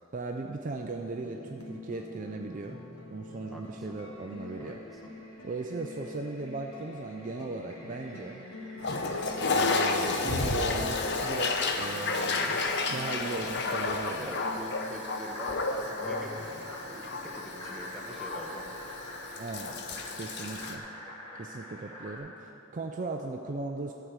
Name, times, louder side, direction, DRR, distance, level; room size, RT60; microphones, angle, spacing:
voice 1, 0.1-2.8 3.1-4.8 5.4-8.4 9.5-12.6 12.9-14.3 19.4-19.8 20.1-20.9 21.4-23.9, right 3 dB, 35° right, 3 dB, 0.4 m, -37 dB
sound 1, 1.1-16.7, left 2 dB, 80° left, 1.6 m, -46 dB
voice 2, 3.5-4.0 4.6-5.0 13.2-13.5 14.2-16.6 16.9-19.0 19.9-20.2, equal, ahead, -3 dB, 1.0 m, -44 dB
Fill (with liquid), 4.2-22.2, equal, 20° left, 2.2 m, -47 dB
Toilet flush, 8.8-20.8, left 3 dB, 50° left, 0.7 m, -31 dB
13.5 x 4.6 x 8.1 m, 3.0 s
head